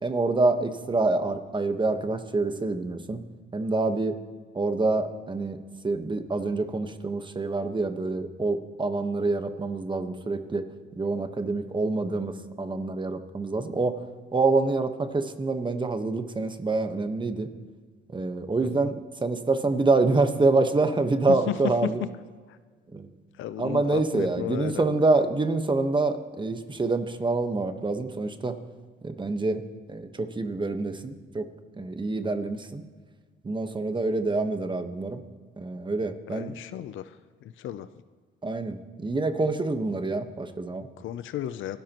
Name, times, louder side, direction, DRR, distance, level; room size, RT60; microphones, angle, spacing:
voice 1, 0.0-3.2 3.5-4.1 4.5-5.6 5.8-10.6 11.0-12.3 12.6-13.9 14.3-17.5 18.1-18.9 19.2-22.0 22.9-23.1 23.6-28.6 29.0-29.6 29.9-31.4 31.8-32.8 33.4-35.2 35.6-36.5 38.4-40.9, right 3 dB, 25° right, 8 dB, 1.2 m, -26 dB
voice 2, 21.3-22.1 23.4-25.1 36.3-37.0 37.4-37.9 41.0-41.8, left 11 dB, 75° left, 13 dB, 0.6 m, -33 dB
26.0 x 12.5 x 3.0 m, 1.5 s
cardioid pair, 90°, 20 cm